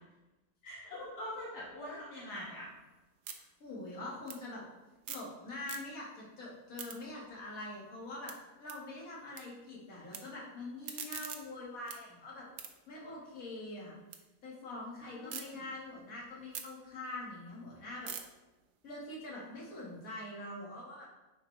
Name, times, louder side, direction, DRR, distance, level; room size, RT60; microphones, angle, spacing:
voice 1, 0.6-2.7 15.1-15.6, left 1 dB, 75° left, -6 dB, 2.1 m, -43 dB
sound 1, 2.4-5.3 5.6-6.2 6.5-9.4 9.7-10.2 10.6-14.2 14.6-15.4 15.9-20.0, right 8 dB, 80° right, 1.4 m, -48 dB
voice 2, 3.6-4.6 5.1-8.3 8.6-12.4 12.9-13.9 14.4-18.1 18.8-21.1, left 2 dB, 55° left, -5 dB, 2.3 m, -44 dB
9.9 x 5.3 x 3.3 m, 1.1 s
omnidirectional pair, 1.8 m